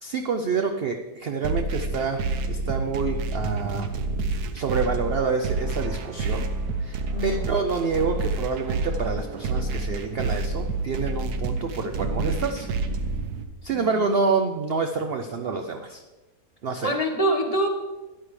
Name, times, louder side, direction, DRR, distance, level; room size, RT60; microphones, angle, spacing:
voice 1, 0.0-2.2 2.5-3.9 4.5-6.4 6.8-12.7 13.6-16.0 16.6-17.0, right 4 dB, 55° right, 6 dB, 0.6 m, -27 dB
sound 1, 1.4-13.4, right 3 dB, 85° right, 1.3 m, -28 dB
voice 2, 7.1-7.4 13.7-14.0 16.8-17.7, right 1 dB, 25° left, 1 dB, 1.3 m, -25 dB
13.0 x 10.5 x 3.3 m, 1.1 s
omnidirectional pair, 1.6 m